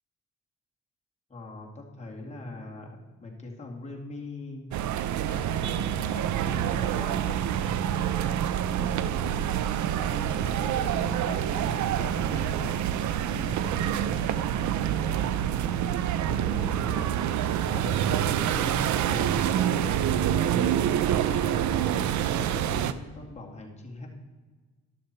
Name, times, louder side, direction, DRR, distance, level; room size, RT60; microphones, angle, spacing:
voice 1, 1.3-4.7 5.2-7.4 8.2-12.8 13.3-17.3 17.6-20.6 21.3-22.0 22.3-24.1, left 2 dB, 20° left, -1 dB, 2.2 m, -41 dB
sound 1, 4.7-22.9, right 10 dB, 70° right, 0.6 m, -27 dB
11.5 x 6.5 x 4.3 m, 1.3 s
cardioid pair, 90°, 30 cm